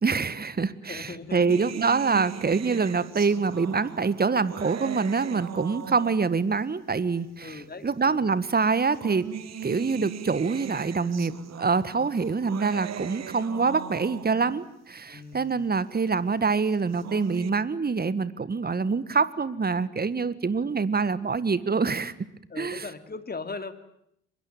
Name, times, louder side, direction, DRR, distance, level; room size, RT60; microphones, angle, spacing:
voice 1, 0.0-9.3 9.6-11.3 11.6-22.1 22.6-22.9, right 4 dB, 30° right, 17 dB, 1.6 m, -25 dB
voice 2, 0.9-1.6 7.4-8.3 15.1-15.7 20.6-20.7 22.5-23.7, left 4 dB, 30° left, 10 dB, 2.7 m, -39 dB
sound 1, 1.5-6.6 7.5-7.6 8.7-14.6 16.7-17.5, right 9 dB, 50° right, 1.6 m, -39 dB
24.0 x 22.0 x 9.0 m, 0.74 s
figure-of-eight pair, 40°, 33 cm